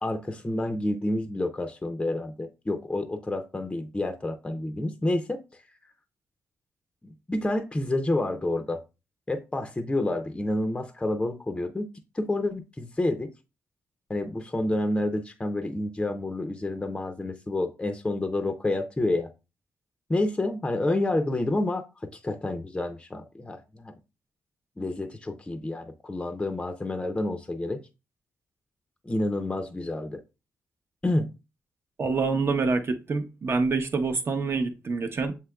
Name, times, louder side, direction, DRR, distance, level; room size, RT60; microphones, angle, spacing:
voice 1, 0.0-5.4 7.0-8.8 9.3-11.9 12.1-13.3 14.1-19.3 20.1-23.9 24.8-27.8 29.0-30.2 31.0-31.3, left 2 dB, 15° left, 0.6 m, -29 dB
voice 2, 32.0-35.3, right 4 dB, 40° right, 0.8 m, -26 dB
7.4 x 2.8 x 2.3 m
cardioid pair, 100°, 6 cm